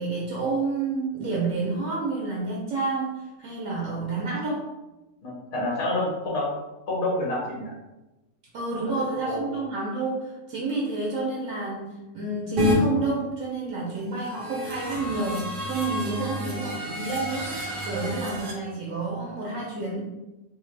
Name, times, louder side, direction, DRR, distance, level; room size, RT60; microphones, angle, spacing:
voice 1, 0.0-4.7 8.5-17.5 17.8-20.1, right 3 dB, 70° right, -4 dB, 1.0 m, -29 dB
voice 2, 5.2-6.6 6.9-7.7 8.8-9.5, left 1 dB, 75° left, -4 dB, 1.5 m, -28 dB
sound 1, 12.6-12.8 14.2-18.5, left 1 dB, 55° right, 0.6 m, -29 dB
3.2 x 2.0 x 3.1 m, 1.0 s
omnidirectional pair, 1.5 m